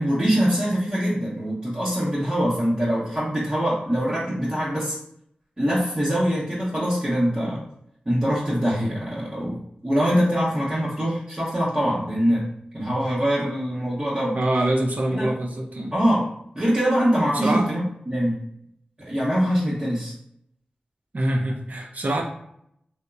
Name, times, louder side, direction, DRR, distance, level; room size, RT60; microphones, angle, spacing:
voice 1, 0.0-5.0 5.6-7.6 8.1-12.4 12.7-14.4 15.2-15.3 15.9-16.2 16.5-18.4 19.0-20.1, equal, 30° right, -9 dB, 0.8 m, -23 dB
voice 2, 14.3-15.9 17.3-17.7 21.1-22.2, right 1 dB, 55° right, 1 dB, 0.5 m, -24 dB
2.8 x 2.1 x 2.3 m, 0.71 s
cardioid pair, 45°, 3 cm